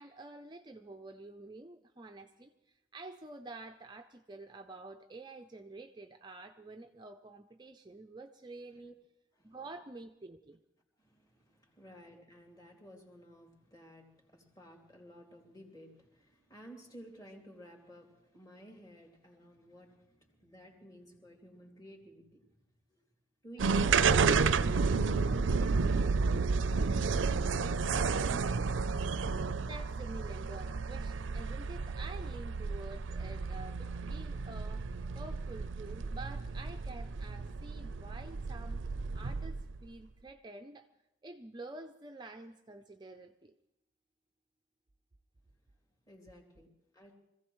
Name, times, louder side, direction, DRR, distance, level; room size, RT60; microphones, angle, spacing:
voice 1, 0.0-8.9 9.4-10.6 23.6-24.4 25.4-25.6 29.6-34.8 35.1-38.8 39.1-40.9 41.2-43.5, right 2 dB, 20° right, 5 dB, 0.5 m, -49 dB
voice 2, 11.0-22.6 22.9-23.0 23.4-24.1 46.0-47.1, right 1 dB, 20° left, 0 dB, 2.7 m, -54 dB
sound 1, 23.6-39.8, right 4 dB, 75° right, 0.5 m, -31 dB
25.5 x 15.5 x 3.1 m, 0.89 s
head